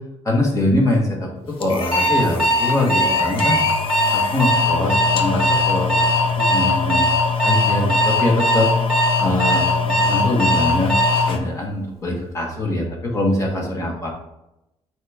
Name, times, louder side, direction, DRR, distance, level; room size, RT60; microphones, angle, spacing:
voice 1, 0.2-3.6 4.1-7.1 7.4-8.7 9.2-10.9 11.3-14.1, left 1 dB, 25° left, -1 dB, 1.6 m, -23 dB
sound 1, 1.6-11.4, left 5 dB, 50° left, 0.8 m, -24 dB
Alarm, 1.9-11.3, equal, 5° left, 2.0 m, -19 dB
6.3 x 4.8 x 3.6 m, 0.88 s
cardioid pair, 160°, 12 cm